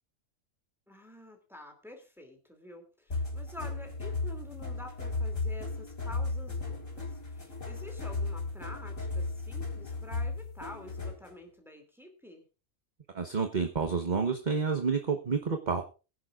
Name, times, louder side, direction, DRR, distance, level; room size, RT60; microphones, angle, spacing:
voice 1, 0.9-12.4, left 1 dB, ahead, 3 dB, 2.6 m, -48 dB
sound 1, 3.1-11.3, left 3 dB, 65° left, 4.5 m, -35 dB
voice 2, 13.1-15.8, right 5 dB, 35° right, 5 dB, 1.1 m, -29 dB
22.0 x 10.5 x 2.4 m, 0.31 s
omnidirectional pair, 1.5 m